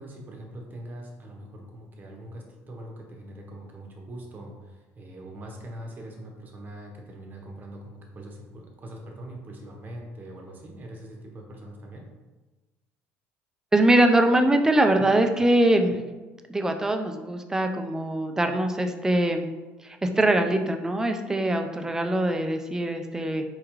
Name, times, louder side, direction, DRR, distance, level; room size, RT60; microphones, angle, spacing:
voice 1, 0.0-12.1, right 1 dB, 35° right, 0 dB, 0.9 m, -42 dB
voice 2, 13.7-16.0 16.5-19.5 19.8-23.4, right 1 dB, 10° right, 5 dB, 0.4 m, -22 dB
4.6 x 2.3 x 3.0 m, 1.2 s
supercardioid pair, 90°, 5 cm